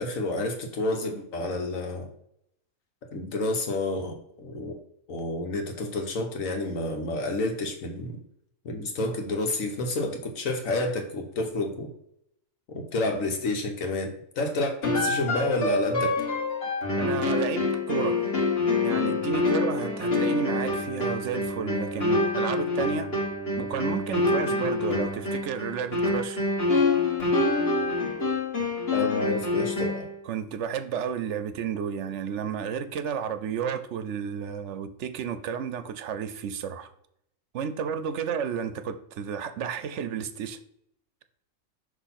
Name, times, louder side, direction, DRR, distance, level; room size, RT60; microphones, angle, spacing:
voice 1, 0.0-2.1 3.1-4.8 5.1-8.1 8.6-11.9 12.9-16.1 28.9-30.1, left 2 dB, 85° left, 3 dB, 1.5 m, -29 dB
sound 1, 14.8-30.1, left 2 dB, 50° left, 1.9 m, -26 dB
voice 2, 17.0-18.2 18.8-23.1 23.6-26.4 29.0-29.1 30.2-36.9 37.5-40.6, right 7 dB, 70° right, 11 dB, 0.9 m, -32 dB
6.4 x 3.0 x 5.8 m, 0.74 s
omnidirectional pair, 1.4 m